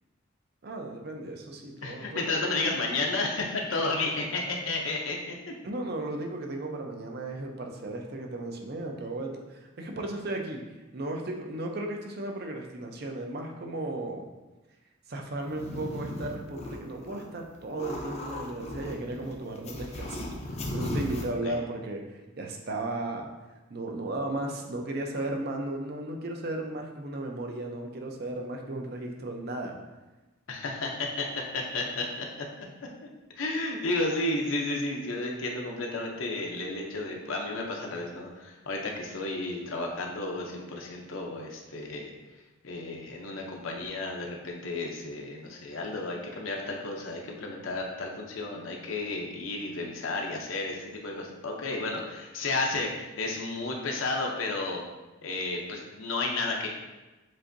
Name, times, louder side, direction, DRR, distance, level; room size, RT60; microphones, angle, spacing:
voice 1, 0.6-2.8 5.6-10.6 10.9-14.3 15.1-22.0 22.4-23.3 23.7-29.7, right 2 dB, 50° right, 2 dB, 0.5 m, -35 dB
voice 2, 1.8-5.5 21.4-21.6 30.5-31.3 31.5-32.5 33.4-42.1 42.6-54.8 55.2-56.7, left 2 dB, 75° left, 0 dB, 0.6 m, -32 dB
sound 1, 15.4-17.2 17.5-21.2, left 1 dB, 30° left, 0.5 m, -36 dB
7.3 x 2.6 x 2.6 m, 1.1 s
head